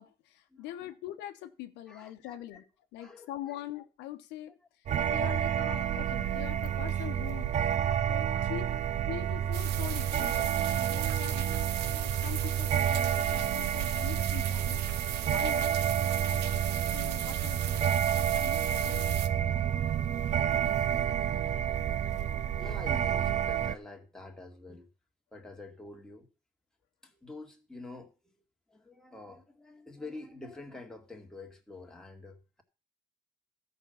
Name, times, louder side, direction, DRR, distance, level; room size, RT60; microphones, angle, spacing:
voice 1, 0.0-8.7 9.1-16.4 16.9-19.3, left 13 dB, 90° left, 1.0 m, -44 dB
voice 2, 1.9-2.3 3.0-3.6 6.2-6.3 7.7-8.8 22.6-24.9 25.3-26.3 27.0-28.4 28.7-32.6, left 2 dB, 5° left, 2.1 m, -47 dB
sound 1, 4.9-23.8, right 9 dB, 45° right, 0.5 m, -29 dB
sound 2, 9.5-19.3, right 11 dB, 80° right, 0.9 m, -38 dB
13.5 x 5.4 x 7.0 m
cardioid pair, 110°, 17 cm